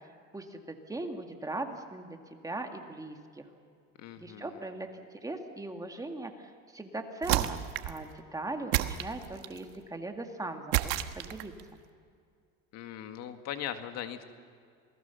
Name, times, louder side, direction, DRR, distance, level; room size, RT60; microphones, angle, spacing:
voice 1, 0.3-3.5 4.2-7.6 7.8-11.8, right 2 dB, 10° right, 4 dB, 2.0 m, -39 dB
voice 2, 4.0-4.7 12.7-14.3, left 10 dB, 55° left, 7 dB, 1.9 m, -40 dB
Meat drop, 7.2-8.0 8.7-9.6 10.7-11.6, right 15 dB, 85° right, 1.4 m, -30 dB
28.0 x 19.0 x 7.0 m, 2.2 s
cardioid pair, 125°, 31 cm